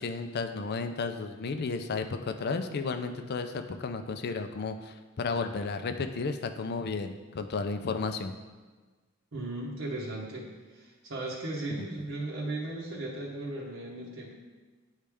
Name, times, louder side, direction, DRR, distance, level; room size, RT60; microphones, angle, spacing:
voice 1, 0.0-8.3 11.7-11.9, left 4 dB, 50° left, 7 dB, 0.4 m, -33 dB
voice 2, 9.3-14.3, right 2 dB, 65° right, -5 dB, 0.9 m, -36 dB
9.6 x 3.2 x 3.4 m, 1.3 s
head